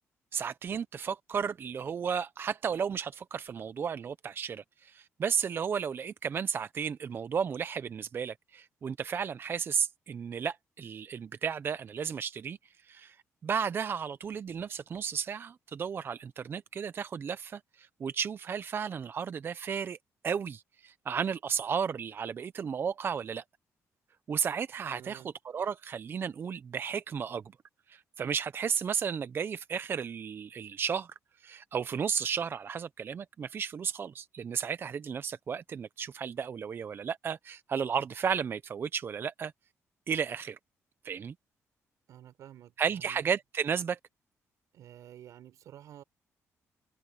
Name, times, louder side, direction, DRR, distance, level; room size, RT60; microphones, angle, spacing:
voice 1, 0.3-12.6 12.9-13.2 13.4-20.0 20.2-23.4 24.3-25.2 25.5-27.4 27.9-31.1 31.4-39.5 40.1-40.6 41.0-41.3 42.8-44.0, right 7 dB, 40° right, 0.5 m, -33 dB
voice 2, 24.9-25.3 42.1-43.3 44.7-46.0, right 11 dB, 80° right, 4.6 m, -51 dB
cardioid pair, 120°, 6 cm